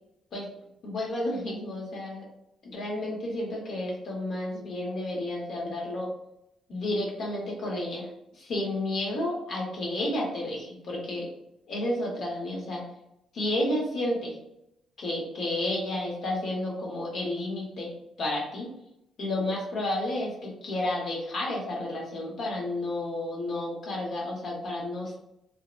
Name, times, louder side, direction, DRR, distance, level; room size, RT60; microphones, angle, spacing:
voice 1, 0.8-2.3 2.6-6.1 6.7-8.1 8.4-11.3 11.7-12.8 13.3-14.4 15.0-17.9 18.2-18.7 19.2-25.2, left 1 dB, 60° left, -2 dB, 0.9 m, -31 dB
2.7 x 2.0 x 2.4 m, 0.81 s
cardioid pair, 90°, 0 cm